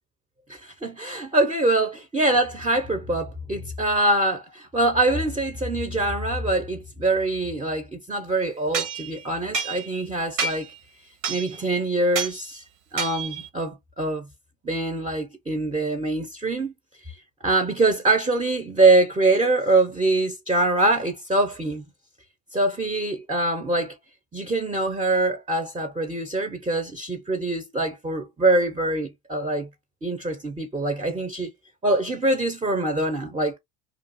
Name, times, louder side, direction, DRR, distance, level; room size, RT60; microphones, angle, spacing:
voice 1, 0.5-10.7 11.3-12.6 12.9-14.3 14.6-16.7 17.4-21.8 22.5-24.0 24.3-29.7 30.0-31.5 31.8-33.6, right 2 dB, 10° right, 0.5 m, -24 dB
sound 1, 8.7-10.1 10.4-10.8 11.2-11.7 12.1-12.4 13.0-13.5, right 5 dB, 85° right, 0.9 m, -29 dB
2.5 x 2.3 x 2.5 m
hypercardioid pair, 70°, 50 cm